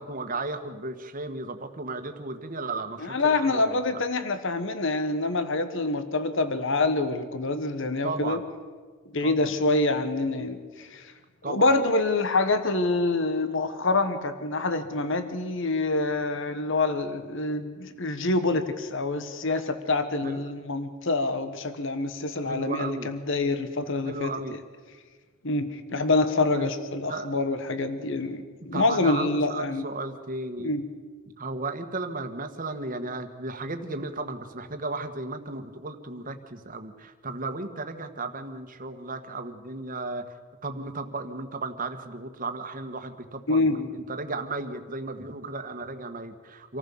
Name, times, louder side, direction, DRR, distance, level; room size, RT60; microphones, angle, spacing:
voice 1, 0.0-4.0 8.0-8.4 9.2-9.5 11.4-11.7 20.2-20.4 22.4-23.1 24.0-24.5 26.5-26.7 27.1-27.4 28.7-30.7 31.4-40.3 40.6-46.8, right 3 dB, 40° right, 7 dB, 1.5 m, -35 dB
voice 2, 3.0-8.4 9.1-11.0 11.4-24.3 25.4-29.8 30.6-30.8 43.5-43.8, left 2 dB, 60° left, 10 dB, 1.4 m, -26 dB
26.0 x 14.5 x 7.1 m, 1.5 s
head